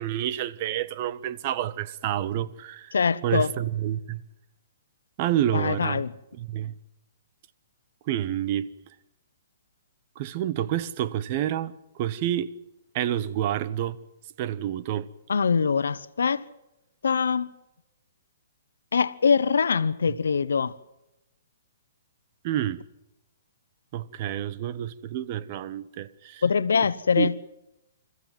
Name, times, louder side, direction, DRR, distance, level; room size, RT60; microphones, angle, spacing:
voice 1, 0.0-2.9 3.2-4.2 5.2-6.0 6.3-6.7 8.1-8.7 10.2-12.5 12.9-14.0 14.4-15.1 22.4-22.8 23.9-26.4 27.2-27.3, right 11 dB, 40° right, 1.0 m, -28 dB
voice 2, 2.9-3.5 5.5-6.1 15.3-16.4 17.0-17.5 18.9-20.7 26.4-27.3, left 6 dB, 90° left, 1.0 m, -23 dB
27.0 x 14.5 x 9.2 m
hypercardioid pair, 145°, 0 cm